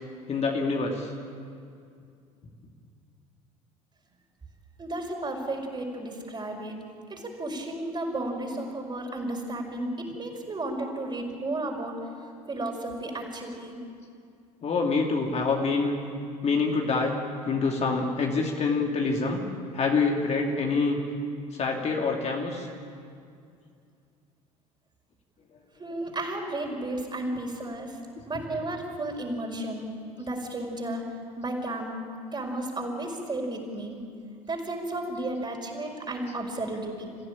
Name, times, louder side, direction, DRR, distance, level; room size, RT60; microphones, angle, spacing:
voice 1, 0.3-1.1 8.4-8.5 14.6-16.0 16.4-17.2 17.5-19.4 19.7-21.0 21.5-22.7, left 4 dB, 35° left, 1 dB, 2.7 m, -26 dB
voice 2, 4.8-6.8 7.1-11.9 12.5-13.8 25.8-28.0 28.3-29.9 30.2-31.0 31.4-32.0 32.3-34.0 34.5-37.2, right 1 dB, 25° right, 1 dB, 5.3 m, -33 dB
28.0 x 15.5 x 8.9 m, 2.4 s
figure-of-eight pair, 65°, 19 cm